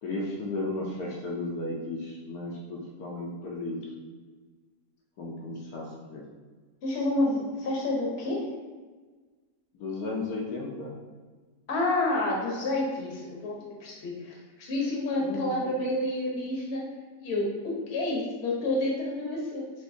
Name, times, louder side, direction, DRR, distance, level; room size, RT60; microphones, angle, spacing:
voice 1, 0.0-3.8 5.2-6.2 9.7-10.9 15.2-15.7, left 2 dB, 70° left, -3 dB, 1.1 m, -34 dB
voice 2, 6.8-8.4 11.7-16.8 17.2-19.6, left 2 dB, 45° left, -3 dB, 1.0 m, -29 dB
5.9 x 2.6 x 2.6 m, 1.4 s
omnidirectional pair, 1.7 m